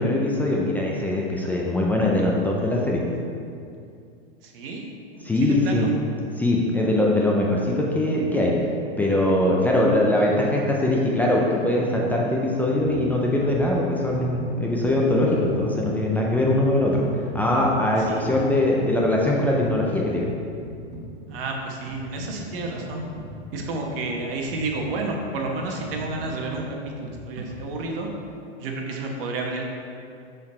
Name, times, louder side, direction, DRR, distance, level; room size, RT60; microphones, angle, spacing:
voice 1, 0.0-3.0 5.2-5.9 6.4-8.5 9.0-17.0 17.3-20.3, left 1 dB, 5° left, -3 dB, 0.3 m, -22 dB
voice 2, 4.4-5.9 18.0-18.5 21.3-23.1 23.5-28.1 28.6-29.7, right 2 dB, 55° right, 1 dB, 1.1 m, -31 dB
sound 1, 12.8-28.2, right 1 dB, 75° right, 1.2 m, -41 dB
6.2 x 4.0 x 4.2 m, 2.4 s
hypercardioid pair, 120°, 33 cm